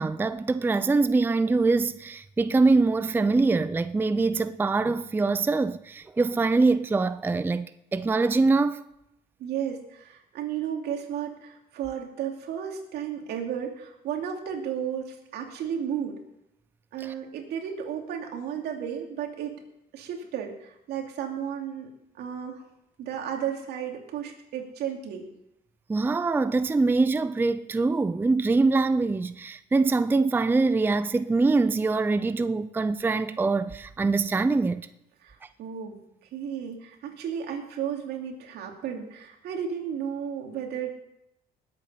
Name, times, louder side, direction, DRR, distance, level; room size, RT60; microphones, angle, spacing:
voice 1, 0.0-8.8 25.9-34.9, right 3 dB, 10° right, 0.4 m, -24 dB
voice 2, 9.4-16.2 16.9-19.6 19.9-21.9 22.1-22.6 23.0-25.3 35.2-36.0 36.3-40.9, right 8 dB, 75° right, 2.6 m, -33 dB
19.5 x 8.4 x 5.6 m
cardioid pair, 110°, 17 cm